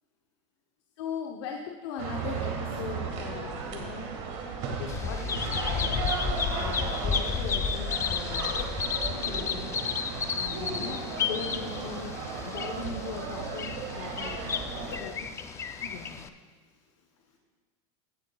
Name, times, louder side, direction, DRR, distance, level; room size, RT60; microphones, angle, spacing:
voice 1, 1.0-4.1 4.6-6.3 6.5-8.4 9.1-9.7 10.3-12.2 12.4-13.7 13.9-14.4 15.0-15.1 15.8-16.2, left 6 dB, 70° left, 1 dB, 0.8 m, -39 dB
sound 1, 2.0-15.0, right 5 dB, 55° right, 1.8 m, -35 dB
Bird vocalization bird call bird song, 4.9-16.3, left 6 dB, 20° left, 0.4 m, -32 dB
voice 2, 14.9-16.1 16.4-17.4, left 5 dB, 85° left, -1 dB, 3.0 m, -48 dB
16.0 x 7.9 x 2.3 m, 1.4 s
supercardioid pair, 145°, 15 cm